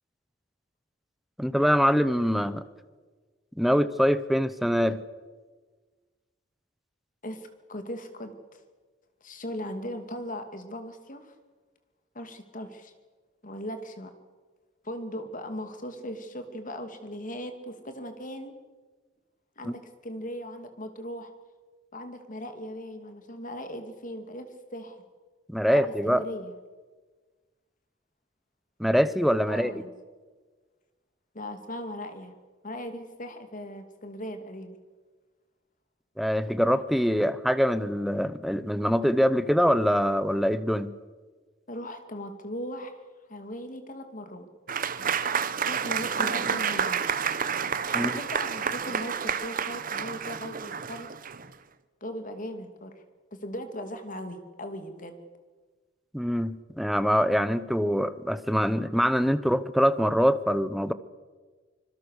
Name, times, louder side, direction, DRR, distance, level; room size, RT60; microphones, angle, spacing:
voice 1, 1.4-2.6 3.6-5.0 19.6-19.8 25.5-26.2 28.8-29.7 36.2-40.9 47.9-48.1 56.1-60.9, equal, ahead, 12 dB, 0.9 m, -24 dB
voice 2, 7.2-8.6 9.2-11.3 12.1-12.9 13.4-14.1 14.8-18.6 19.6-21.3 21.9-25.0 25.7-26.5 29.5-29.9 31.3-32.3 32.6-34.8 41.7-43.0 43.3-44.5 44.9-45.3 45.7-47.1 47.9-51.1 52.0-53.0 53.3-55.2, equal, 45° left, 7 dB, 2.6 m, -38 dB
Applause / Crowd, 44.7-51.5, right 7 dB, 45° right, 1.0 m, -29 dB
25.5 x 22.0 x 6.7 m, 1.4 s
head